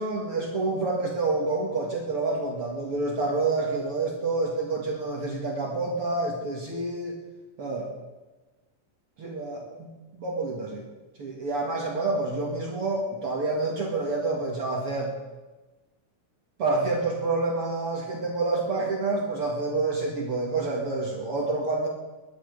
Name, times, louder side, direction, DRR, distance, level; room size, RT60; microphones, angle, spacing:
voice 1, 0.0-7.2 7.6-7.9 9.2-9.9 10.1-10.8 11.2-15.1 16.6-21.9, right 3 dB, 45° right, -1 dB, 2.6 m, -28 dB
21.5 x 11.0 x 5.3 m, 1.2 s
omnidirectional pair, 3.7 m